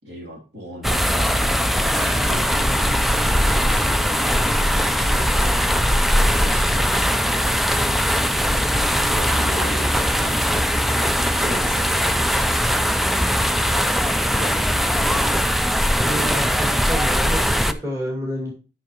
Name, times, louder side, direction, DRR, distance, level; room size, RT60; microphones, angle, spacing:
voice 1, 0.0-2.5 3.5-4.1 4.9-5.6 6.1-7.0 9.0-9.9 11.3-12.8 14.4-14.6, right 1 dB, 60° right, -2 dB, 2.9 m, -38 dB
sound 1, 0.8-17.7, equal, ahead, 0.3 m, -20 dB
sound 2, 1.9-15.4, left 4 dB, 40° left, 0.6 m, -38 dB
voice 2, 16.0-18.5, equal, 15° right, -2 dB, 2.3 m, -29 dB
10.5 x 6.1 x 2.9 m, 0.34 s
head